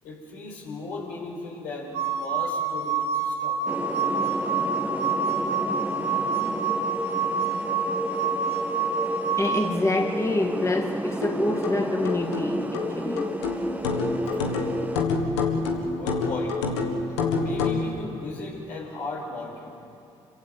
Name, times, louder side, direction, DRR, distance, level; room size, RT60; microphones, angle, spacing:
voice 1, 0.0-3.6 7.6-7.7 15.9-16.6 17.3-20.0, left 3 dB, 75° left, -2 dB, 5.8 m, -36 dB
sound 1, 1.9-9.7, right 5 dB, 80° right, 1.6 m, -27 dB
sound 2, 3.7-15.0, right 1 dB, 10° right, 1.7 m, -32 dB
voice 2, 9.4-13.3, left 2 dB, 20° left, 2 dB, 2.2 m, -26 dB
sound 3, 11.2-17.9, left 4 dB, 90° left, 1.7 m, -27 dB
26.5 x 16.5 x 7.7 m, 2.6 s
hypercardioid pair, 50°, 14 cm